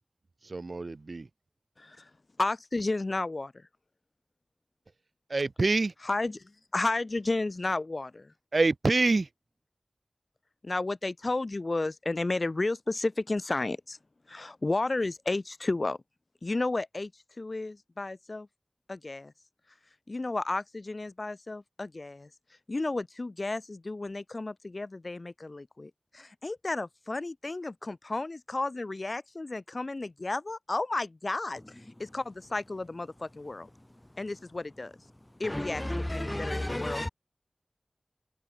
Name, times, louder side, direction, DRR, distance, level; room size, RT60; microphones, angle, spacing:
voice 1, 0.4-1.3 5.3-5.9 8.5-9.3, right 3 dB, 80° right, 0.4 m, -26 dB
voice 2, 2.4-3.5 6.0-6.4 6.7-8.1 10.6-14.0 14.3-16.0 16.4-17.1 17.4-18.5 18.9-19.3 20.1-22.3 22.7-31.6 32.0-33.7 34.2-34.9 35.4-35.8 36.1-37.0, left 2 dB, 65° left, 2.0 m, -32 dB
voice 3, 31.6-32.2 33.7-34.3 35.1-37.1, left 1 dB, 20° left, 1.1 m, -35 dB
wide cardioid pair, 50°, 0 cm